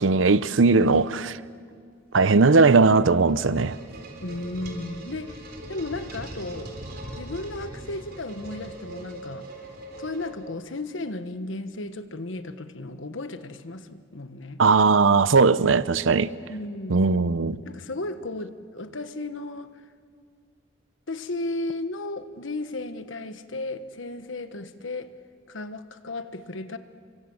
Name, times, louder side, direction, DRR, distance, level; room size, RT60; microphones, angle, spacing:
voice 1, 0.0-1.4 2.1-3.8 14.6-16.3 16.9-17.6, right 4 dB, 80° right, 0.8 m, -19 dB
sound 1, 3.3-10.8, right 1 dB, 50° right, 4.4 m, -40 dB
voice 2, 4.2-5.4 5.7-6.7 7.1-9.5 10.0-14.6 16.2-17.1 17.7-19.8 21.1-25.1 25.5-26.8, left 2 dB, 75° left, 1.3 m, -34 dB
29.5 x 24.0 x 7.9 m
head